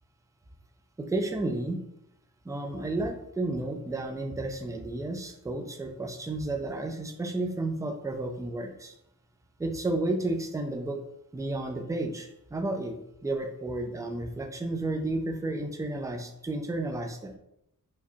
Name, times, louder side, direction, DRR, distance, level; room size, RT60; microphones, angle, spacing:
voice 1, 1.0-1.8 2.4-9.0 9.6-11.0 11.3-17.3, right 2 dB, 10° right, 5 dB, 0.3 m, -32 dB
4.8 x 2.2 x 2.7 m, 0.79 s
wide cardioid pair, 115°, 35 cm